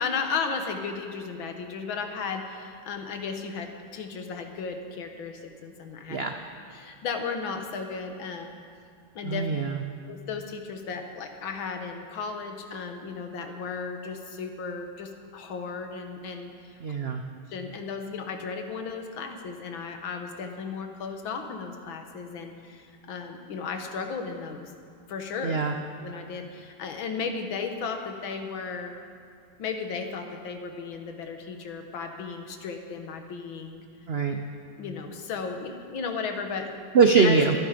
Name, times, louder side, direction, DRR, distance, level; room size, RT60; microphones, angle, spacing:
voice 1, 0.0-6.2 6.7-8.6 9.1-9.5 10.1-16.8 17.5-24.7 25.1-25.6 26.0-28.9 29.6-33.8 34.8-36.8 37.2-37.5, left 5 dB, 85° left, 5 dB, 2.0 m, -35 dB
voice 2, 9.2-9.8 16.8-17.2 25.4-25.7 34.1-34.4 36.9-37.5, right 5 dB, 80° right, 5 dB, 0.5 m, -22 dB
23.0 x 9.8 x 5.1 m, 2.4 s
omnidirectional pair, 2.1 m